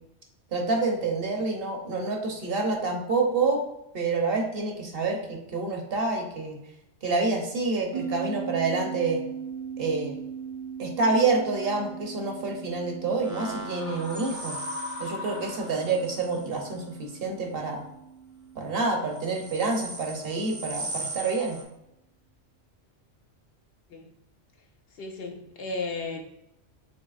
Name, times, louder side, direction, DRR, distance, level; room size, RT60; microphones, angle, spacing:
voice 1, 0.5-3.6 3.9-6.6 7.0-9.2 9.8-10.1 10.8-14.6 15.0-17.8 18.6-21.6, right 3 dB, 55° right, 2 dB, 0.9 m, -27 dB
sound 1, 7.9-20.7, right 7 dB, 85° right, 1.3 m, -40 dB
sound 2, 13.2-16.8 18.9-21.6, right 2 dB, 20° right, 0.6 m, -39 dB
sound 3, 13.6-16.2, left 3 dB, 85° left, 1.1 m, -39 dB
voice 2, 24.9-26.2, left 3 dB, 65° left, 4 dB, 0.7 m, -34 dB
6.6 x 2.8 x 2.4 m, 0.86 s
omnidirectional pair, 1.2 m